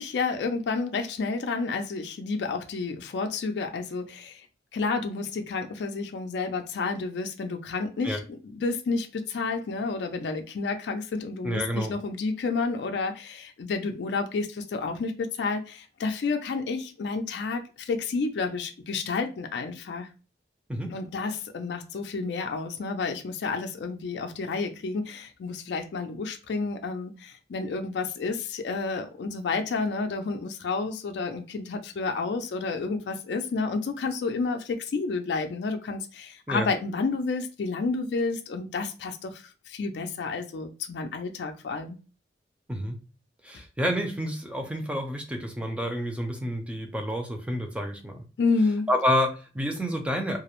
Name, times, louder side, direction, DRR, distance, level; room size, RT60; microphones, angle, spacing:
voice 1, 0.0-4.5 4.7-20.1 20.9-42.0 48.4-48.9, left 4 dB, 65° left, 6 dB, 0.4 m, -30 dB
voice 2, 11.4-11.9 20.7-20.9 36.5-36.7 42.7-43.0 43.4-48.2 48.9-50.4, equal, 5° right, 3 dB, 0.4 m, -29 dB
2.3 x 2.0 x 2.9 m, 0.33 s
head